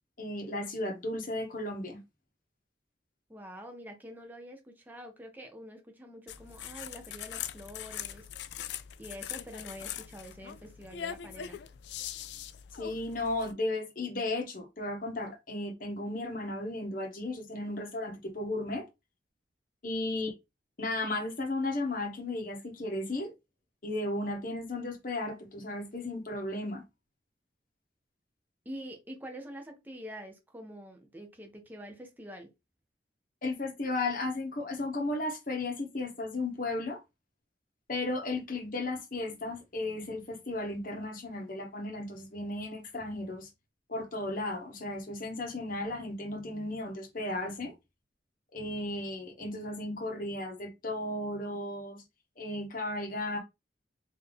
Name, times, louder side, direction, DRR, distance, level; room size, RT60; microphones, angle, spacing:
voice 1, 0.2-2.0 12.8-18.8 19.8-20.3 20.8-23.3 23.8-26.8 33.4-37.0 37.9-43.5 43.9-47.7 48.5-52.0 52.4-53.4, left 2 dB, 50° left, 1.1 m, -35 dB
voice 2, 3.3-8.2 9.0-11.6 28.6-32.5, equal, 10° right, 0.7 m, -46 dB
sound 1, 6.3-13.5, left 10 dB, 70° left, 0.3 m, -42 dB
3.8 x 2.7 x 3.3 m
head